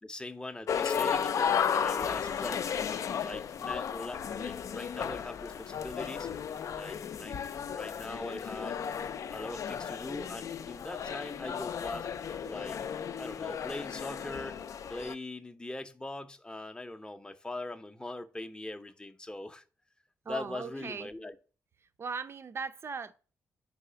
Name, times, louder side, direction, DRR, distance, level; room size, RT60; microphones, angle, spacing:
voice 1, 0.0-2.7 3.2-6.3 6.7-7.4 7.7-8.8 9.3-12.1 12.4-12.8 13.2-19.6 20.3-21.3, left 2 dB, 15° left, 0.6 m, -41 dB
sound 1, 0.7-15.1, left 7 dB, 60° left, 0.4 m, -34 dB
voice 2, 20.2-21.1 21.8-23.1, right 5 dB, 45° right, 0.5 m, -38 dB
4.7 x 4.1 x 5.6 m
cardioid pair, 65°, 6 cm